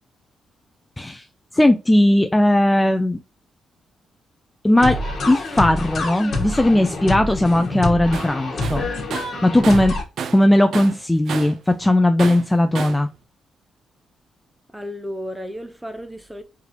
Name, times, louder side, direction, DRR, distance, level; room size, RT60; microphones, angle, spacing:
voice 1, 1.5-3.2 4.6-5.0 5.3-8.9 9.4-10.0 10.3-13.1, left 1 dB, 10° left, 0.4 m, -17 dB
sound 1, 4.8-10.0, left 2 dB, 55° left, 1.5 m, -26 dB
Tools, 8.1-8.3 8.6-10.5 10.7-11.6 12.2-13.1, right 6 dB, 70° right, 0.5 m, -31 dB
voice 2, 14.7-16.4, equal, 10° right, 0.8 m, -33 dB
4.7 x 3.4 x 2.9 m
cardioid pair, 100°, 0 cm